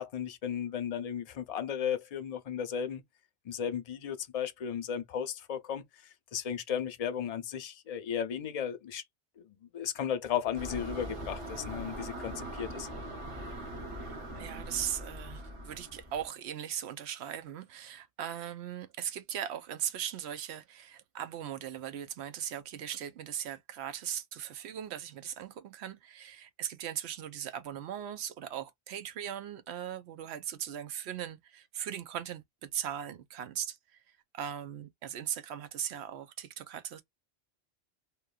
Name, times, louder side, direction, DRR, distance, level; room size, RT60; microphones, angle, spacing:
voice 1, 0.0-3.0 3.4-9.0 9.4-12.9, left 8 dB, 45° left, 0.5 m, -35 dB
sound 1, 10.5-16.3, right 1 dB, 30° right, 0.8 m, -41 dB
voice 2, 14.0-34.0 34.3-37.0, right 10 dB, 85° right, 0.9 m, -39 dB
2.9 x 2.2 x 2.2 m
omnidirectional pair, 1.1 m